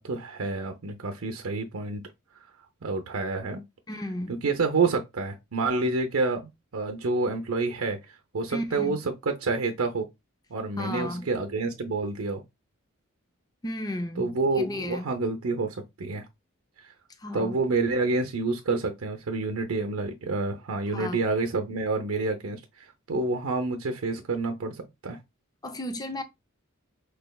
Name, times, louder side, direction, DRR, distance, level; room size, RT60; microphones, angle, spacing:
voice 1, 0.0-2.1 2.8-3.6 4.4-8.0 8.3-9.0 9.3-10.1 10.5-12.4 14.2-16.2 17.3-25.2, right 3 dB, 70° right, 0.7 m, -28 dB
voice 2, 3.9-4.4 8.5-9.0 10.8-11.7 13.6-15.1 17.2-17.7 20.9-21.2 25.6-26.2, left 1 dB, 20° left, 0.6 m, -34 dB
4.7 x 3.3 x 2.3 m
head